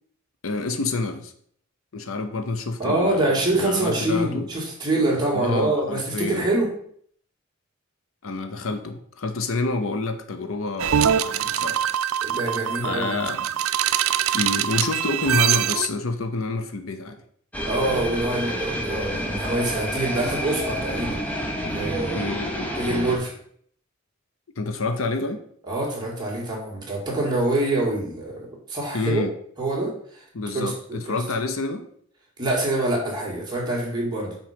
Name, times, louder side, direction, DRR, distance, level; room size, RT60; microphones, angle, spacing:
voice 1, 0.4-1.3 1.9-4.5 5.3-6.5 8.2-11.8 12.8-13.5 14.3-17.2 22.1-22.7 24.6-25.4 28.9-29.3 30.3-31.9, left 3 dB, 85° left, 8 dB, 0.8 m, -28 dB
voice 2, 2.8-6.7 12.2-13.2 17.6-21.2 21.6-22.3 22.8-23.4 25.7-28.4 28.7-29.2 29.6-30.2 30.5-31.2 32.4-34.4, right 2 dB, 20° right, -3 dB, 2.3 m, -25 dB
sound 1, 10.8-15.9, right 10 dB, 85° right, 0.4 m, -23 dB
sound 2, 17.5-23.2, equal, 5° left, 1.0 m, -29 dB
6.0 x 4.2 x 5.1 m, 0.63 s
head